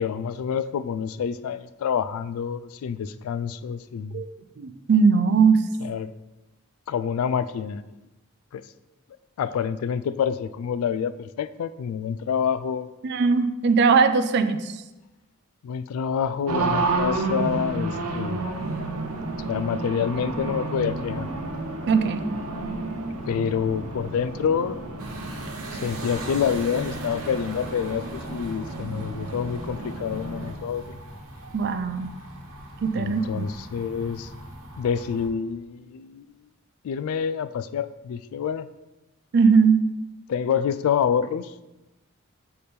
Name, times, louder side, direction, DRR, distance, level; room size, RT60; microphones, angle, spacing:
voice 1, 0.0-4.2 5.8-6.1 6.9-7.9 8.5-8.6 9.4-12.9 15.6-18.5 19.5-21.3 23.3-24.8 25.7-31.0 32.9-34.3 34.8-36.4 36.8-38.7 40.3-41.5, left 7 dB, 80° left, 16 dB, 0.3 m, -27 dB
voice 2, 4.6-5.6 13.0-14.8 21.9-22.2 31.5-32.1 32.8-33.5 39.3-39.9, right 5 dB, 50° right, 10 dB, 0.4 m, -20 dB
Race car auto racing, 16.5-30.5, right 3 dB, 90° right, 0.8 m, -31 dB
sound 1, 25.0-35.3, right 1 dB, 75° right, 1.1 m, -41 dB
6.6 x 3.4 x 4.3 m, 1.0 s
head